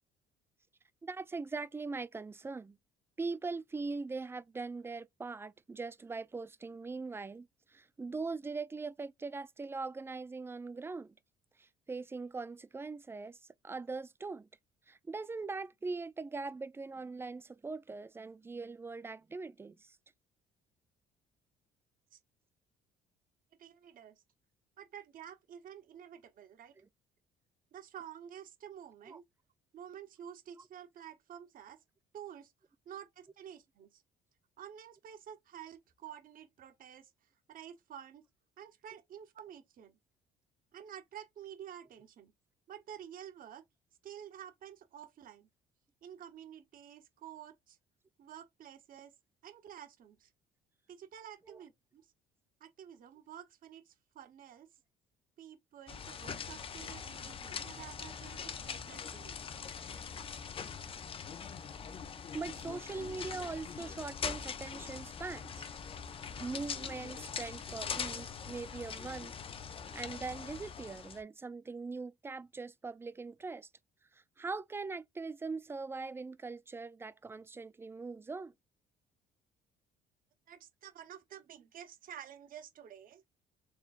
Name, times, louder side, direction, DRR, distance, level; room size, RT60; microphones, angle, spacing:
voice 1, 1.0-2.8 3.2-11.1 11.6-13.4 13.6-14.5 14.9-20.0 26.8-26.9 29.1-29.2 51.5-51.6 62.3-65.7 66.4-69.3 69.9-73.7 74.1-78.5, right 4 dB, 15° right, 0.3 m, -41 dB
voice 2, 23.6-24.2 24.8-26.7 27.7-29.2 29.7-31.8 32.1-32.5 32.9-34.0 34.6-37.1 37.5-38.3 38.6-40.0 40.7-42.3 42.7-43.6 44.0-45.5 46.0-47.8 48.2-49.1 49.4-50.3 50.9-52.1 52.6-54.7 55.4-59.4 80.5-83.2, right 9 dB, 55° right, 1.1 m, -50 dB
sound 1, 55.9-71.2, left 6 dB, 35° left, 0.6 m, -42 dB
4.4 x 3.3 x 2.5 m
cardioid pair, 110°, 17 cm